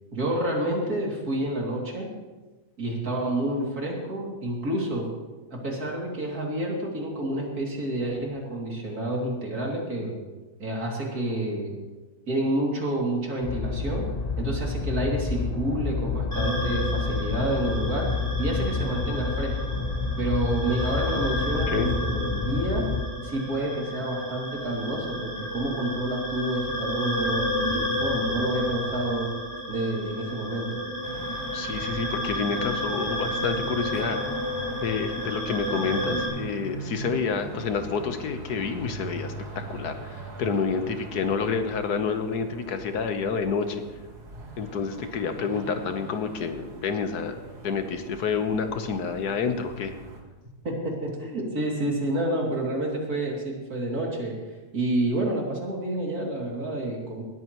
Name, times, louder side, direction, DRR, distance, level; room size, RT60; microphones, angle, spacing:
voice 1, 0.1-2.1 2.8-5.1 5.5-10.2 10.6-11.8 12.3-14.1 14.4-18.1 18.4-19.7 20.2-22.9 23.2-29.3 29.7-30.8 50.6-54.3 54.7-57.2, right 1 dB, 70° right, -2 dB, 3.3 m, -29 dB
sound 1, 13.4-23.0, left 4 dB, 40° left, 0.6 m, -29 dB
sound 2, 16.3-36.3, equal, 10° left, 4.6 m, -31 dB
voice 2, 21.5-21.9 31.5-34.4 34.8-43.8 44.6-49.9, left 5 dB, 80° left, 7 dB, 1.6 m, -29 dB
sound 3, 31.0-50.2, right 3 dB, 85° right, 2.5 m, -42 dB
19.0 x 14.0 x 3.1 m, 1.2 s
omnidirectional pair, 1.7 m